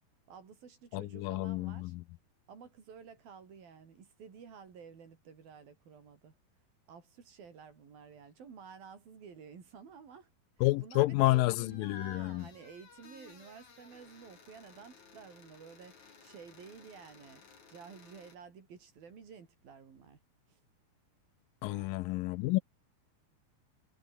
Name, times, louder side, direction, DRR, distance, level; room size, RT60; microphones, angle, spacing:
voice 1, 0.3-1.9 2.5-6.4 6.9-10.3 10.6-17.4 17.7-20.2 20.5-20.6 21.6-22.0, right 6 dB, 75° right, 5.9 m, -52 dB
voice 2, 0.9-2.0 10.6-12.4 21.6-22.6, left 19 dB, 80° left, 2.2 m, -30 dB
sound 1, 11.3-18.4, left 5 dB, 50° left, 5.4 m, -58 dB
omnidirectional pair, 4.2 m